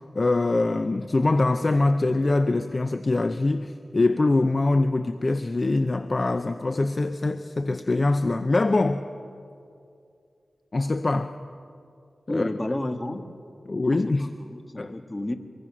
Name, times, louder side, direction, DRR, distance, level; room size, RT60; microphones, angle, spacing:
voice 1, 0.1-9.0 10.7-11.3 12.3-12.5 13.7-14.3 14.8-14.9, left 2 dB, 45° left, 9 dB, 0.7 m, -23 dB
voice 2, 12.3-13.2 14.1-15.3, left 1 dB, 25° left, 6 dB, 1.6 m, -31 dB
24.0 x 23.5 x 6.1 m, 2.4 s
wide cardioid pair, 75°, 0 cm